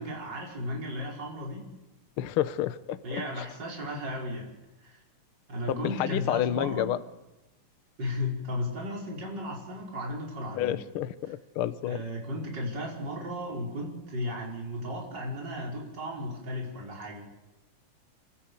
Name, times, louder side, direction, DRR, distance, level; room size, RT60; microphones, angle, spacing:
voice 1, 0.0-1.7 3.0-4.5 4.8-5.0 5.5-6.9 8.0-10.8 11.9-17.2, left 1 dB, 30° right, -2 dB, 5.5 m, -35 dB
voice 2, 2.2-3.5 5.7-7.0 10.6-12.0, left 11 dB, 75° left, 13 dB, 1.2 m, -30 dB
29.0 x 14.0 x 8.2 m, 1.0 s
omnidirectional pair, 3.7 m